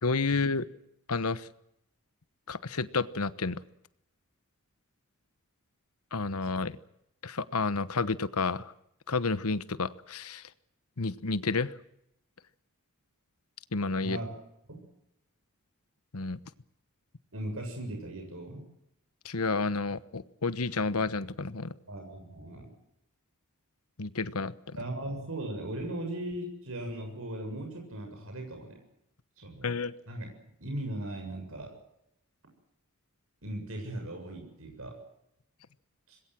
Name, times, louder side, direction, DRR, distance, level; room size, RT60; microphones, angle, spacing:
voice 1, 0.0-0.6 1.1-1.5 2.5-3.6 6.1-6.8 7.2-8.7 9.1-10.4 11.0-11.7 13.7-14.2 16.1-16.4 19.2-21.7 24.0-24.5 29.6-29.9, left 4 dB, 80° left, 14 dB, 1.2 m, -30 dB
voice 2, 14.0-14.4 14.7-14.8 17.3-18.6 21.9-22.7 24.8-28.8 29.4-29.7 30.1-30.3 30.6-31.7 33.4-35.0 36.1-36.2, right 1 dB, 70° right, 3 dB, 7.3 m, -38 dB
26.0 x 21.0 x 7.7 m, 0.80 s
head